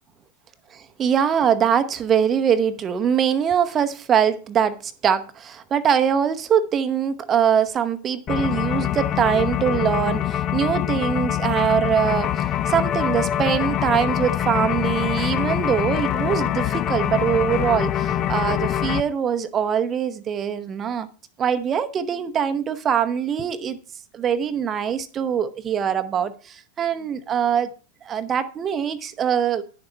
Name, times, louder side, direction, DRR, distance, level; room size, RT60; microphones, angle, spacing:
voice 1, 0.7-21.1 21.4-23.8 24.1-27.7 28.0-29.6, right 8 dB, 25° right, 0.8 m, -23 dB
sound 1, 8.3-19.0, left 11 dB, 30° left, 0.5 m, -24 dB
10.5 x 7.0 x 4.5 m
figure-of-eight pair, 90°, 0 cm